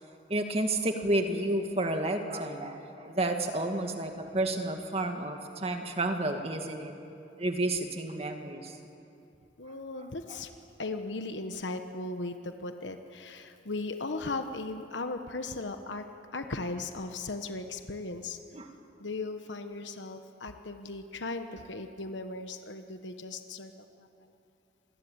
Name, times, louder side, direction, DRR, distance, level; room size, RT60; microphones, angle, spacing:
voice 1, 0.3-6.9 7.4-8.8 10.0-10.4 18.5-18.7, right 1 dB, 35° right, 4 dB, 2.0 m, -31 dB
voice 2, 9.6-10.5 10.8-16.0 16.3-18.4 19.0-23.7, left 3 dB, 85° left, 7 dB, 1.2 m, -37 dB
26.5 x 20.0 x 8.8 m, 2.8 s
head